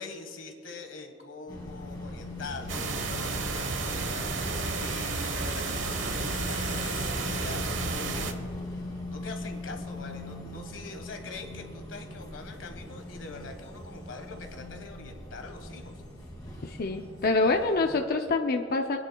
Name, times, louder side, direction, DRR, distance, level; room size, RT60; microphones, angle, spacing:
voice 1, 0.0-8.5 9.1-16.0, left 3 dB, 85° left, 5 dB, 1.5 m, -43 dB
sound 1, 1.5-18.0, left 1 dB, 25° left, 2.4 m, -40 dB
sound 2, 2.7-8.3, right 3 dB, 80° right, 1.1 m, -32 dB
voice 2, 16.6-19.0, left 3 dB, 55° left, 3 dB, 0.6 m, -26 dB
26.5 x 10.0 x 2.3 m, 2.7 s
head